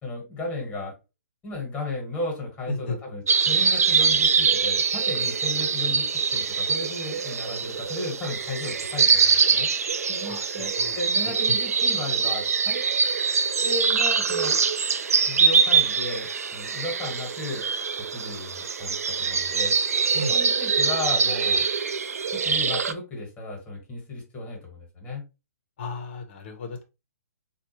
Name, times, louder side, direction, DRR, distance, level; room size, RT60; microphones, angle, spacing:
voice 1, 0.0-0.9 1.4-9.7 10.1-12.8 13.6-14.6 15.3-17.6 18.1-19.7 20.3-21.7 22.3-25.2, left 2 dB, 15° left, 0 dB, 1.6 m, -34 dB
voice 2, 2.7-3.0 10.2-11.0 11.3-11.4 20.1-20.3 25.8-26.8, left 2 dB, 40° left, 5 dB, 1.0 m, -34 dB
sound 1, 3.3-22.9, right 5 dB, 60° right, 0.4 m, -23 dB
4.2 x 2.5 x 3.0 m, 0.27 s
figure-of-eight pair, 125°, 9 cm